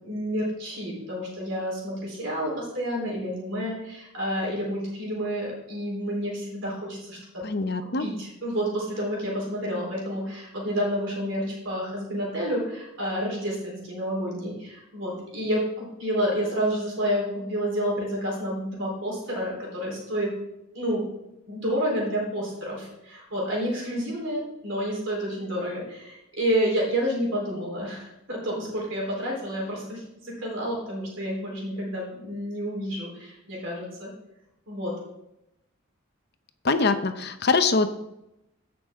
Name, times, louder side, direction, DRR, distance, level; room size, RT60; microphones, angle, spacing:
voice 1, 0.0-7.4 7.8-20.3 20.7-21.0 21.5-34.1 34.7-34.9, equal, 60° right, -3 dB, 4.0 m, -29 dB
voice 2, 7.4-8.1 36.6-37.9, left 4 dB, 50° left, 8 dB, 0.8 m, -23 dB
16.0 x 6.2 x 3.7 m, 0.87 s
head